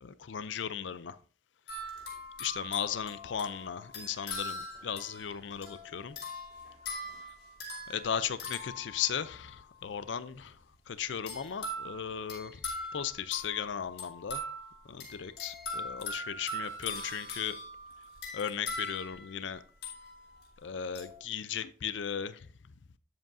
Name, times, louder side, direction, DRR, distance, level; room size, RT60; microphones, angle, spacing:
voice 1, 0.0-1.2 2.4-6.2 7.9-10.6 10.9-12.6 12.9-14.4 14.9-17.5 18.3-19.6 20.6-22.5, left 8 dB, 80° left, 0.5 m, -36 dB
sound 1, 1.7-9.5 11.3-20.5 20.9-21.2, left 1 dB, 65° left, 4.7 m, -41 dB
12.0 x 7.8 x 2.6 m
head